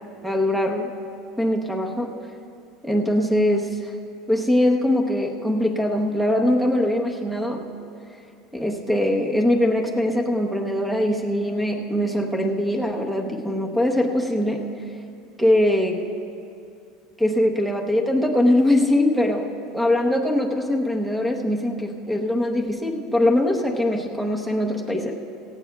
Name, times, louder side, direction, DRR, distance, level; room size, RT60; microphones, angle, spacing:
voice 1, 0.2-0.9 1.4-2.1 2.8-3.9 4.3-7.8 8.5-14.8 15.4-16.0 17.2-25.1, left 1 dB, 5° right, 2 dB, 0.8 m, -22 dB
17.5 x 16.0 x 2.3 m, 2.5 s
supercardioid pair, 145°, 0 cm